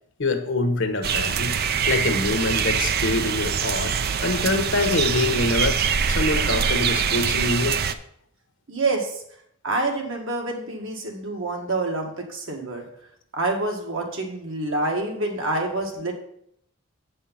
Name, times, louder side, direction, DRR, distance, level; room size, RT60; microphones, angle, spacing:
voice 1, 0.2-1.6 1.9-3.9 4.2-7.8, left 2 dB, 65° left, 6 dB, 1.1 m, -25 dB
sound 1, 1.0-7.9, right 7 dB, 50° right, 0.5 m, -24 dB
voice 2, 8.7-9.2 9.6-12.8 13.3-16.1, right 2 dB, 70° right, 1 dB, 1.8 m, -27 dB
8.1 x 5.4 x 5.7 m, 0.69 s
head